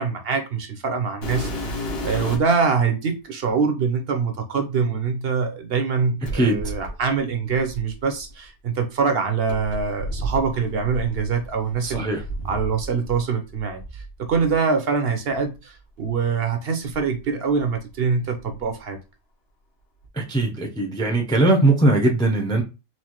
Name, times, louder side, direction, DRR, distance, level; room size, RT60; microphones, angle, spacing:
voice 1, 0.0-1.5 1.8-12.1 12.4-19.0, right 5 dB, 60° right, 0.8 m, -24 dB
sound 1, 1.2-2.6 3.5-3.6 6.2-8.3 9.5-13.2 13.5-14.5 15.3-15.4 16.0-16.1 16.8-17.9 18.2-18.7 20.0-20.1, equal, 55° left, 1.3 m, -33 dB
voice 2, 11.8-12.2 20.1-22.6, right 2 dB, 5° left, 0.4 m, -20 dB
4.3 x 2.5 x 2.9 m
omnidirectional pair, 1.3 m